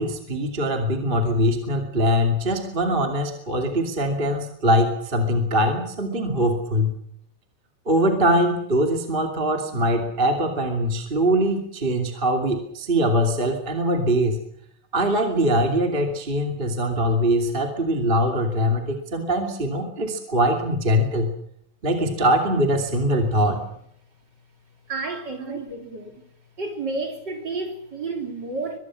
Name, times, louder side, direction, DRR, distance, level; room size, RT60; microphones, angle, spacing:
voice 1, 0.0-6.9 7.9-14.4 14.9-21.3 21.8-23.6, equal, 20° right, 2.6 m, -22 dB
voice 2, 24.9-26.1 26.6-28.8, right 3 dB, 35° right, 3.5 m, -31 dB
23.5 x 22.5 x 6.3 m
omnidirectional pair, 3.3 m